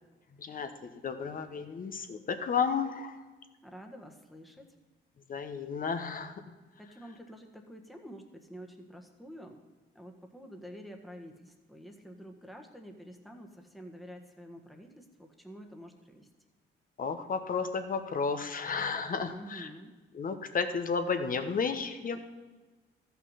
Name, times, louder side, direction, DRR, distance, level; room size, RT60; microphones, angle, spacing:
voice 1, 0.4-3.2 5.3-6.3 17.0-19.7 20.1-22.2, left 5 dB, 45° left, 7 dB, 1.1 m, -32 dB
voice 2, 3.6-4.7 6.8-9.6 9.9-16.3 19.2-19.9 22.1-22.2, equal, ahead, 2 dB, 1.4 m, -48 dB
13.0 x 6.0 x 5.7 m, 1.3 s
cardioid pair, 90°, 20 cm